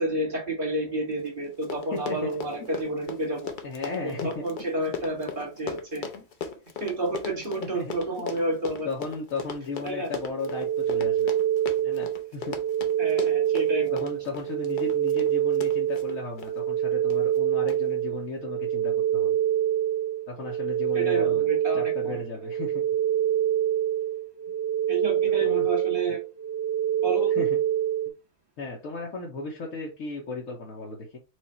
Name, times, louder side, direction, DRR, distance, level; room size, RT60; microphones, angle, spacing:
voice 1, 0.0-3.6 4.0-6.1 6.8-8.9 9.8-10.1 13.0-13.9 20.9-22.2 24.9-26.2 27.0-27.4, right 1 dB, 40° right, 1.7 m, -30 dB
Run, 1.3-1.4 1.5-16.5 17.1-17.4 17.7-17.8, left 6 dB, 45° left, 0.7 m, -38 dB
voice 2, 1.9-2.3 3.6-4.4 6.1-6.2 7.7-7.9 8.8-11.3 11.8-12.6 13.9-19.4 20.3-21.4 21.7-22.8 25.4-25.7 27.3-27.6 28.6-31.2, left 3 dB, 70° left, 1.3 m, -35 dB
sound 1, 10.2-28.1, right 10 dB, 20° right, 0.4 m, -26 dB
4.7 x 2.5 x 4.2 m
omnidirectional pair, 1.5 m